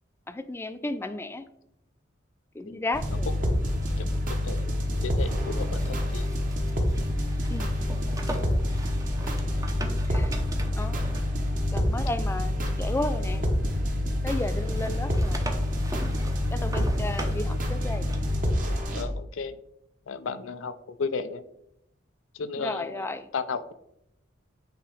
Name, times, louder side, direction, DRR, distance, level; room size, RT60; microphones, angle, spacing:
voice 1, 0.3-1.5 2.5-3.4 7.5-7.7 10.1-10.4 10.8-11.1 11.7-13.4 14.2-15.5 16.5-18.1 22.6-23.3, left 2 dB, 10° left, 11 dB, 0.3 m, -33 dB
sound 1, 2.9-19.0, left 1 dB, 45° right, 1.1 m, -27 dB
sound 2, 3.4-14.0 14.3-18.6, right 2 dB, 15° right, 0.6 m, -42 dB
voice 2, 4.0-4.8 5.0-6.3 18.9-19.6 20.1-21.4 22.3-23.7, left 5 dB, 90° left, 11 dB, 0.5 m, -34 dB
8.5 x 2.9 x 4.8 m, 0.79 s
head